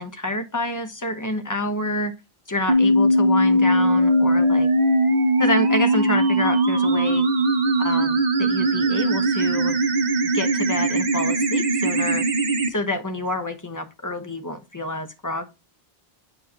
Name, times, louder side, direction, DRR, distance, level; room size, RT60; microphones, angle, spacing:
voice 1, 0.0-2.1 2.5-4.7 5.4-7.3 7.8-9.8 10.3-12.2 12.7-15.4, left 1 dB, 20° left, 7 dB, 0.9 m, -28 dB
sound 1, 2.7-12.7, right 1 dB, 45° right, 0.9 m, -20 dB
8.8 x 4.6 x 2.8 m, 0.25 s
omnidirectional pair, 1.0 m